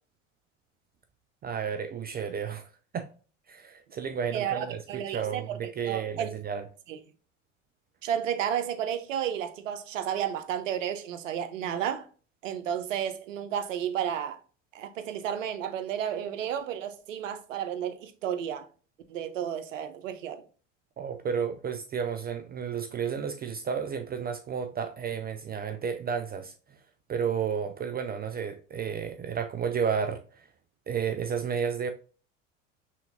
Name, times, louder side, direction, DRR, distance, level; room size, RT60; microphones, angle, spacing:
voice 1, 1.4-2.7 2.9-3.1 3.5-6.6 21.0-26.5 27.1-30.5 30.9-31.9, right 7 dB, 25° right, 0.5 m, -32 dB
voice 2, 4.3-6.3 6.9-7.0 8.0-12.1 12.4-14.4 14.7-18.7 19.1-20.4, right 9 dB, 80° right, 0.8 m, -32 dB
5.7 x 3.6 x 2.5 m
hypercardioid pair, 80°, 37 cm